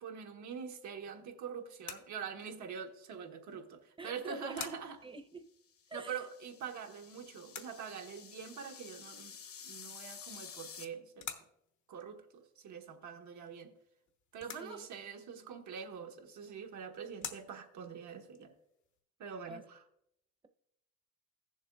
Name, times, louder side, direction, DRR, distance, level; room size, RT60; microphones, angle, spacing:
voice 1, 0.0-5.0 5.9-9.4 9.6-11.3 11.9-13.7 14.3-18.5 19.2-19.8, right 6 dB, 70° right, 1.3 m, -44 dB
sound 1, 0.8-19.0, left 8 dB, 75° left, 1.2 m, -53 dB
voice 2, 4.0-4.6 5.0-5.5 5.9-6.3 14.6-14.9 19.5-19.7, right 3 dB, 15° right, 0.7 m, -46 dB
sound 2, 5.7-10.8, left 7 dB, 50° left, 0.9 m, -51 dB
15.5 x 7.2 x 2.4 m
cardioid pair, 90°, 30 cm